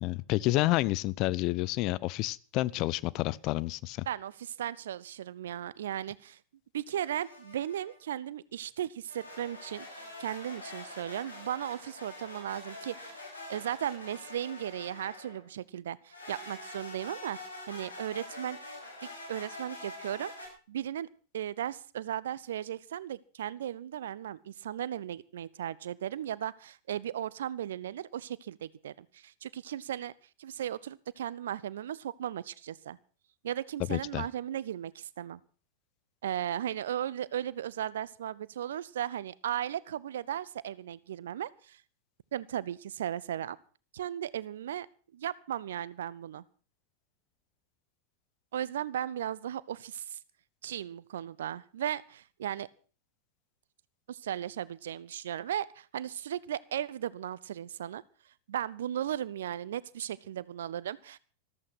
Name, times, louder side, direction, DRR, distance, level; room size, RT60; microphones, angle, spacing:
voice 1, 0.0-4.1 33.9-34.2, left 18 dB, 40° left, 21 dB, 0.7 m, -29 dB
voice 2, 4.1-6.4 6.7-13.2 13.5-17.4 17.7-18.6 19.3-21.1 21.3-30.1 30.4-33.0 33.4-35.4 36.2-41.8 42.3-43.6 43.9-44.9 45.1-46.4 48.5-50.2 50.6-52.7 54.1-58.0 58.5-61.2, right 10 dB, 60° right, 21 dB, 0.8 m, -36 dB
sound 1, 7.0-8.0 9.1-15.5 16.1-20.5, left 2 dB, 75° left, 7.3 m, -45 dB
14.5 x 14.0 x 6.1 m, 0.39 s
figure-of-eight pair, 90°, 0 cm